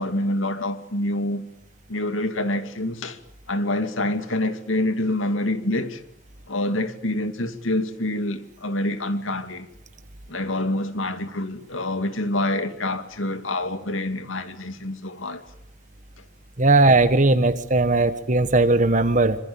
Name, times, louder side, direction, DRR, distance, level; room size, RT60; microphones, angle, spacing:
voice 1, 0.0-1.4 1.9-3.2 3.5-6.0 6.5-9.7 10.3-15.4, left 1 dB, 80° left, 2.5 m, -26 dB
voice 2, 16.6-19.4, right 2 dB, 40° right, 1.5 m, -18 dB
26.5 x 25.5 x 8.7 m
head